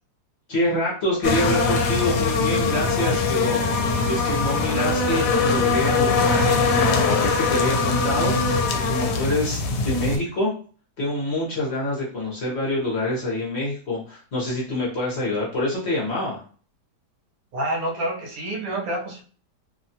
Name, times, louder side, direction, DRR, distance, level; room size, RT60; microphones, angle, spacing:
voice 1, 0.5-3.6 4.1-8.6 8.9-10.5 11.0-16.4, left 1 dB, 50° left, -5 dB, 0.9 m, -26 dB
sound 1, 1.2-10.2, left 4 dB, 75° left, 1.1 m, -22 dB
voice 2, 17.5-19.2, right 1 dB, 65° right, 0 dB, 1.0 m, -28 dB
2.8 x 2.2 x 2.7 m, 0.41 s
omnidirectional pair, 1.8 m